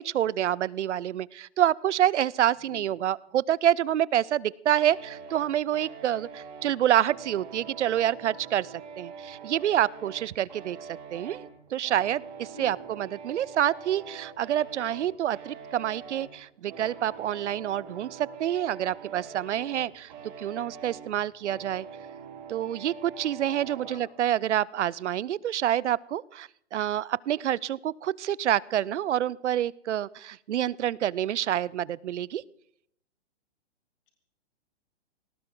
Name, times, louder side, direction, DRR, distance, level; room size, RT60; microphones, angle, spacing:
voice 1, 0.0-10.8 11.1-20.1 20.4-21.9 22.5-32.4, right 11 dB, 90° right, 23 dB, 0.6 m, -27 dB
sound 1, 4.8-24.0, right 6 dB, 40° right, 4.2 m, -44 dB
voice 2, 12.4-12.9 23.8-24.1, left 6 dB, 50° left, 1 dB, 3.6 m, -47 dB
20.5 x 18.0 x 3.8 m, 0.70 s
hypercardioid pair, 165°, 34 cm